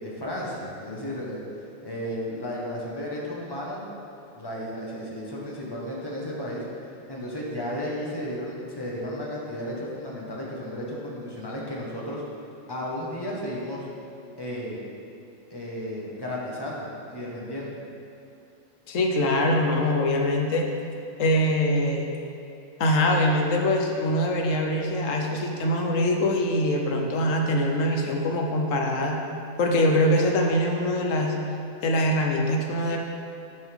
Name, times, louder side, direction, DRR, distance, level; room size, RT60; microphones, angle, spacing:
voice 1, 0.0-1.4 1.8-3.8 4.3-6.6 7.1-12.2 12.7-13.9 14.4-14.8 15.5-17.8, equal, 20° left, -5 dB, 1.3 m, -33 dB
voice 2, 18.9-20.7 21.2-22.1 22.8-29.2 29.6-31.3 31.8-33.0, left 1 dB, 80° left, 1 dB, 1.2 m, -23 dB
10.5 x 5.4 x 3.6 m, 2.6 s
omnidirectional pair, 1.3 m